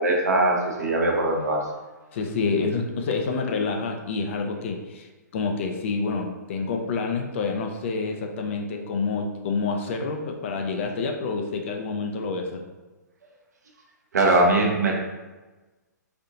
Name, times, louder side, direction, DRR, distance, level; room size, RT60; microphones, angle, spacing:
voice 1, 0.0-1.6 14.1-15.0, right 2 dB, 65° right, 1 dB, 0.8 m, -21 dB
voice 2, 2.1-12.7, left 4 dB, 40° left, 4 dB, 0.4 m, -28 dB
4.2 x 2.5 x 2.7 m, 1.2 s
figure-of-eight pair, 120°, 10 cm